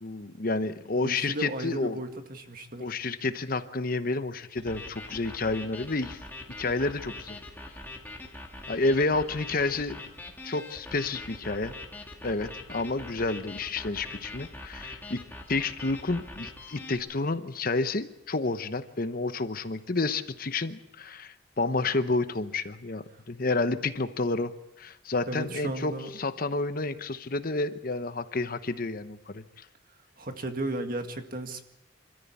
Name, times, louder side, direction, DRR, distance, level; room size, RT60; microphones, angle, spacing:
voice 1, 0.0-2.0 2.8-6.2 6.6-7.4 8.7-10.0 10.4-11.7 12.2-15.2 15.5-24.5 24.8-29.7, left 3 dB, 45° left, 11 dB, 0.9 m, -30 dB
voice 2, 1.0-2.9 23.1-23.2 25.3-26.1 30.2-31.6, right 2 dB, 45° right, 6 dB, 1.9 m, -35 dB
sound 1, 4.6-16.9, left 2 dB, 10° left, 2.3 m, -43 dB
26.5 x 14.0 x 8.5 m, 0.90 s
head